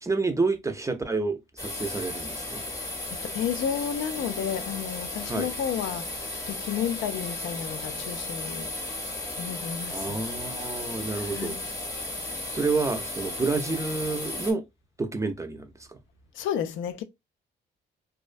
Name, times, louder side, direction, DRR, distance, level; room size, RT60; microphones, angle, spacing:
voice 1, 0.0-2.6 5.3-5.5 9.9-11.6 12.5-14.6 15.0-16.0, right 3 dB, 15° right, 0.4 m, -29 dB
sound 1, 1.6-14.5, left 2 dB, 15° left, 0.8 m, -35 dB
voice 2, 3.1-8.7 9.4-10.2 11.1-11.6 16.3-17.0, left 9 dB, 80° left, 0.4 m, -32 dB
2.3 x 2.1 x 2.4 m
cardioid pair, 90°, 20 cm